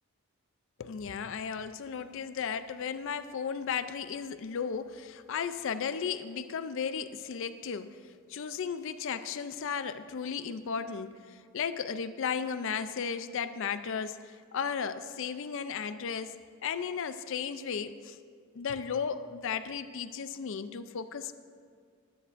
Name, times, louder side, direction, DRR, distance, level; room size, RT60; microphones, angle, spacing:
voice 1, 0.8-8.0 8.3-16.4 16.6-18.2 18.5-21.3, left 6 dB, 60° left, 12 dB, 0.4 m, -35 dB
20.0 x 9.9 x 2.5 m, 2.1 s
head